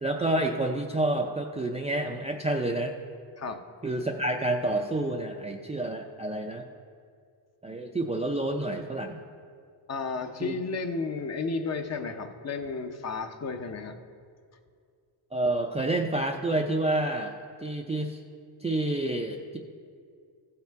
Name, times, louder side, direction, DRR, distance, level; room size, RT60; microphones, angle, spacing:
voice 1, 0.0-2.9 3.8-6.7 7.6-9.2 10.4-10.6 15.3-17.3 17.6-18.2 18.6-19.6, right 2 dB, 15° right, 1 dB, 0.4 m, -29 dB
voice 2, 9.9-14.0, left 4 dB, 35° left, 7 dB, 0.6 m, -33 dB
15.5 x 5.8 x 4.6 m, 2.2 s
cardioid pair, 135°, 44 cm